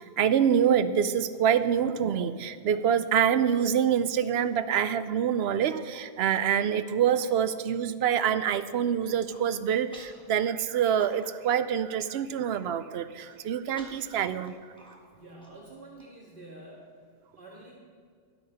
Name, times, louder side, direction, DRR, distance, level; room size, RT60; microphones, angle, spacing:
voice 1, 0.0-14.5, right 8 dB, 90° right, 13 dB, 0.8 m, -26 dB
Human voice, 9.2-9.5 9.9-10.2 10.6-11.5 11.8-11.9 12.3-12.6 13.2-16.0, equal, 5° left, 1.5 m, -52 dB
voice 2, 15.1-17.0 17.4-17.8, right 2 dB, 55° right, -4 dB, 1.9 m, -48 dB
12.5 x 8.4 x 5.5 m, 2.1 s
omnidirectional pair, 1.0 m